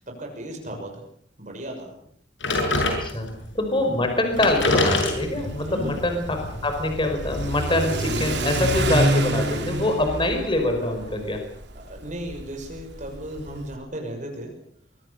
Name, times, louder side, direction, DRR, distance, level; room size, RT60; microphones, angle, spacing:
voice 1, 0.1-1.0 1.4-1.9 5.6-6.0 11.7-14.5, right 1 dB, 40° right, 2 dB, 6.3 m, -35 dB
sound 1, 2.4-3.5 4.0-4.1 4.3-7.4, left 2 dB, 75° left, 6.9 m, -26 dB
voice 2, 3.5-11.5, left 1 dB, 25° left, 5 dB, 5.0 m, -24 dB
Car / Accelerating revving vroom, 4.3-13.7, right 1 dB, 60° right, 4.1 m, -29 dB
24.5 x 23.5 x 6.7 m, 0.67 s
head